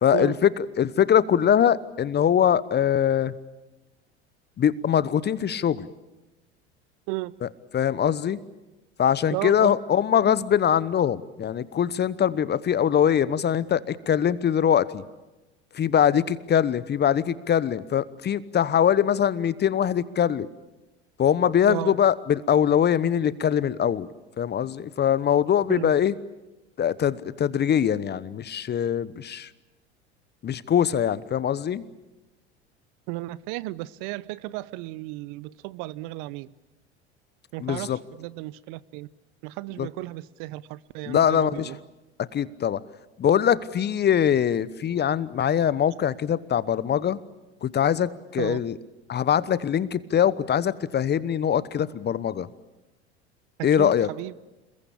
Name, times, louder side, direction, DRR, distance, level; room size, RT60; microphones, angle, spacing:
voice 1, 0.0-3.3 4.6-5.9 7.4-8.4 9.0-15.0 15.7-20.5 21.2-24.1 24.4-26.1 26.8-29.5 30.4-31.8 37.6-38.0 39.8-39.9 41.1-41.8 42.3-42.8 43.2-47.2 47.6-48.8 49.1-52.5 53.6-54.1, left 9 dB, 30° left, 18 dB, 1.0 m, -22 dB
voice 2, 9.3-9.7 21.7-21.9 25.7-25.9 33.1-36.5 37.5-39.1 39.4-41.8 48.4-48.6 53.8-54.3, right 19 dB, 55° right, 20 dB, 0.9 m, -34 dB
28.0 x 22.0 x 8.7 m, 1.1 s
hypercardioid pair, 75°, 34 cm